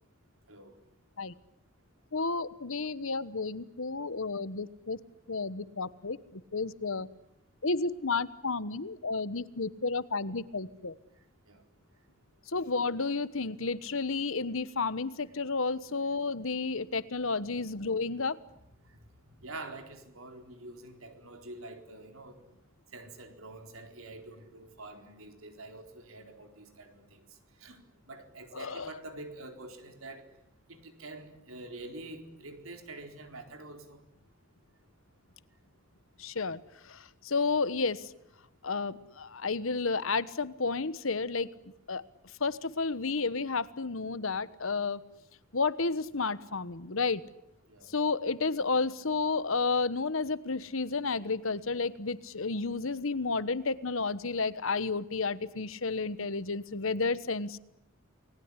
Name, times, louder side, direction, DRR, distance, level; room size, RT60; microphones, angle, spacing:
voice 1, 2.1-5.0 5.3-6.2 6.5-7.1 7.6-10.9 12.5-18.4 28.5-28.9 36.2-36.6 36.9-37.0 37.2-38.0 38.6-41.5 41.9-42.0 42.4-45.0 45.5-47.2 47.9-57.6, left 4 dB, 80° left, 16 dB, 1.2 m, -31 dB
voice 2, 19.4-22.4 22.9-27.2 27.6-30.3 30.7-34.0 47.7-47.9, right 2 dB, 85° right, 6 dB, 4.2 m, -46 dB
29.0 x 20.5 x 9.9 m, 0.81 s
head